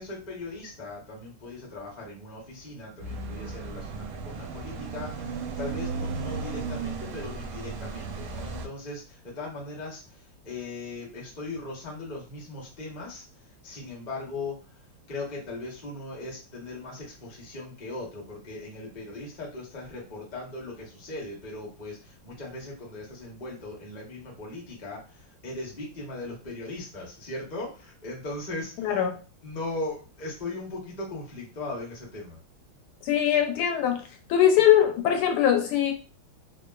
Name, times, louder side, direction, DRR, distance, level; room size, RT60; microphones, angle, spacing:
voice 1, 0.0-14.8 15.1-28.9 29.4-32.4, left 2 dB, 40° left, -3 dB, 0.6 m, -38 dB
sound 1, 3.0-8.7, right 4 dB, 85° right, 1.4 m, -35 dB
voice 2, 28.8-29.2 33.0-34.0 34.3-35.9, left 10 dB, 85° left, 4 dB, 1.4 m, -21 dB
3.4 x 2.0 x 2.3 m, 0.34 s
omnidirectional pair, 2.3 m